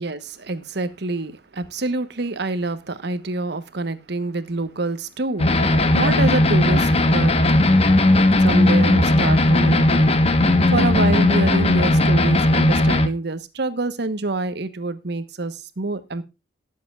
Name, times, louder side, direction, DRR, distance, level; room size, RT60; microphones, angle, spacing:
voice 1, 0.0-7.4 8.4-10.1 10.7-16.2, right 2 dB, 65° right, 1.2 m, -26 dB
sound 1, 5.4-13.1, left 1 dB, 35° left, 1.2 m, -17 dB
19.0 x 7.6 x 2.4 m
head